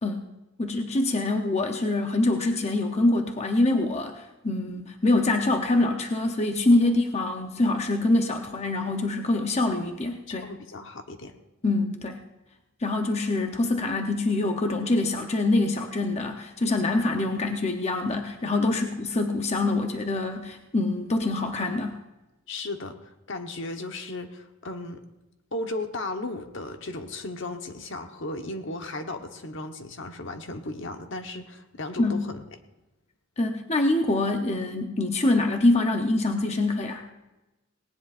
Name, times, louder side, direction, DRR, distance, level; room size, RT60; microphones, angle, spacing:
voice 1, 0.6-10.5 11.6-12.2 12.8-21.9 32.0-32.2 33.4-37.1, left 2 dB, 30° left, 4 dB, 0.8 m, -25 dB
voice 2, 10.3-11.3 18.6-18.9 22.5-22.9 23.3-25.0 25.5-32.4, left 2 dB, 60° left, 6 dB, 1.2 m, -35 dB
18.5 x 18.0 x 2.6 m, 1.0 s
head